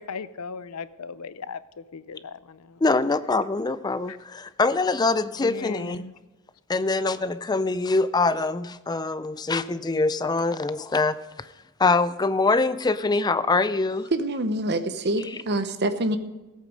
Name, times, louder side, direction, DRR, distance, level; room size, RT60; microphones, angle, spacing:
voice 1, 0.0-1.6 1.9-2.8 4.1-4.2 5.4-6.1, left 5 dB, 80° left, 15 dB, 0.6 m, -37 dB
voice 2, 2.8-6.1 6.7-11.2 11.8-14.1, left 3 dB, 20° left, 14 dB, 0.4 m, -24 dB
voice 3, 14.1-16.2, right 1 dB, 50° right, 10 dB, 0.9 m, -26 dB
17.0 x 8.4 x 5.2 m, 1.1 s
head